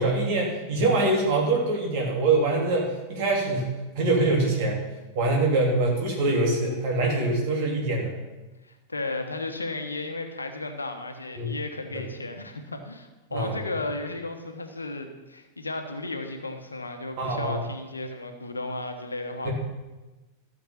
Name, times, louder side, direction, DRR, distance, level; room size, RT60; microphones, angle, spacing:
voice 1, 0.0-4.8 5.1-8.1 11.4-11.6 11.9-12.0 13.3-13.6 17.2-17.6 19.4-19.5, right 2 dB, 50° right, -1 dB, 3.5 m, -24 dB
voice 2, 8.6-19.5, left 2 dB, 80° left, 6 dB, 1.2 m, -34 dB
13.5 x 6.6 x 5.8 m, 1.1 s
figure-of-eight pair, 90°, 0 cm